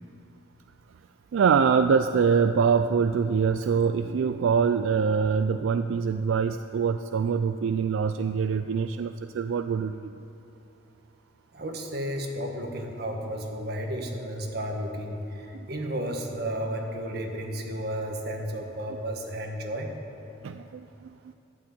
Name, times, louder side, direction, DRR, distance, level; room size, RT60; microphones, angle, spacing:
voice 1, 1.3-10.1 20.4-20.8, right 6 dB, 85° right, 10 dB, 0.4 m, -24 dB
voice 2, 11.5-19.9, equal, 55° right, 2 dB, 1.5 m, -33 dB
12.0 x 8.6 x 8.5 m, 2.8 s
head